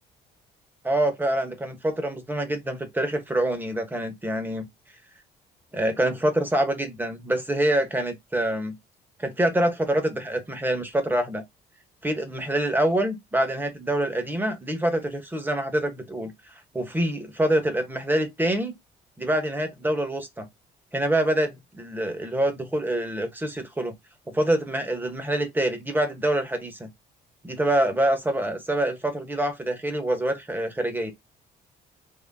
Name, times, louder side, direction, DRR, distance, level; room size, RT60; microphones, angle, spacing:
voice 1, 0.8-4.7 5.7-8.8 9.2-11.4 12.0-16.3 16.7-18.7 19.2-20.5 20.9-23.9 24.3-26.9 27.4-31.1, right 1 dB, 10° right, 1.1 m, -26 dB
3.8 x 2.9 x 2.6 m
cardioid pair, 110°, 17 cm